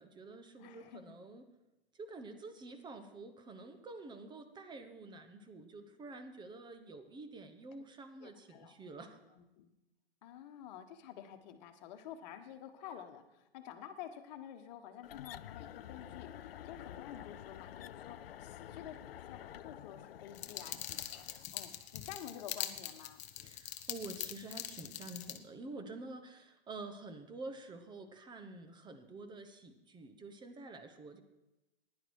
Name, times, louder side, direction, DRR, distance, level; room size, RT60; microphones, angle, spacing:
voice 1, 0.0-1.4 1.9-9.3 23.4-31.2, right 3 dB, 15° right, 8 dB, 1.1 m, -48 dB
voice 2, 0.6-1.2 8.2-8.7 9.4-9.7 10.2-23.2, left 10 dB, 45° left, 7 dB, 1.4 m, -50 dB
sound 1, 15.0-21.5, left 11 dB, 65° left, 0.5 m, -49 dB
sound 2, 20.3-25.4, left 12 dB, 25° left, 0.7 m, -43 dB
15.0 x 10.5 x 4.8 m, 0.99 s
hypercardioid pair, 115°, 31 cm